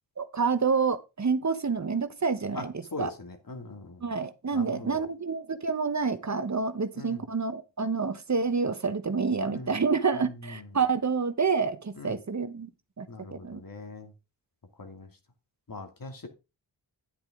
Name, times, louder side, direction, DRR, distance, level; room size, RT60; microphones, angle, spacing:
voice 1, 0.2-3.1 4.0-12.7 13.0-13.6, right 5 dB, 40° right, 1.1 m, -28 dB
voice 2, 2.9-4.0 4.5-5.0 7.0-7.2 9.5-9.7 10.4-10.7 12.0-12.2 13.1-14.1 14.8-15.1 15.7-16.3, left 3 dB, 50° left, 2.5 m, -41 dB
9.8 x 8.7 x 3.6 m
cardioid pair, 45°, 43 cm